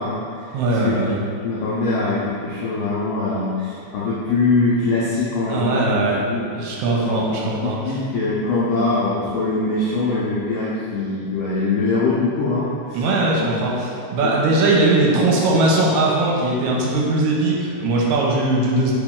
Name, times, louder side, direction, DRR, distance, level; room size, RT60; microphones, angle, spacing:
voice 1, 0.0-6.5 7.0-13.0 14.2-14.3, left 3 dB, 85° left, -8 dB, 1.4 m, -23 dB
voice 2, 0.5-1.2 5.5-6.2 6.5-7.8 12.9-18.9, right 2 dB, 80° right, -3 dB, 1.9 m, -19 dB
4.3 x 3.0 x 3.6 m, 2.3 s
omnidirectional pair, 3.4 m